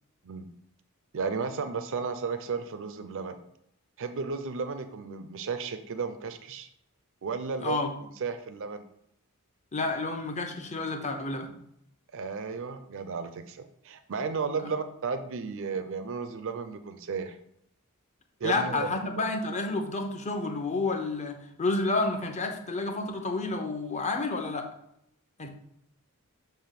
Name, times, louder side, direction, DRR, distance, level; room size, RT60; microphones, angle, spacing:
voice 1, 1.1-3.4 4.0-6.7 7.2-8.8 12.1-17.4 18.4-19.2, right 5 dB, 60° right, 10 dB, 0.5 m, -34 dB
voice 2, 7.6-7.9 9.7-11.5 18.4-24.7 25.4-25.5, left 3 dB, 30° left, 4 dB, 0.9 m, -30 dB
6.8 x 3.0 x 5.8 m, 0.75 s
head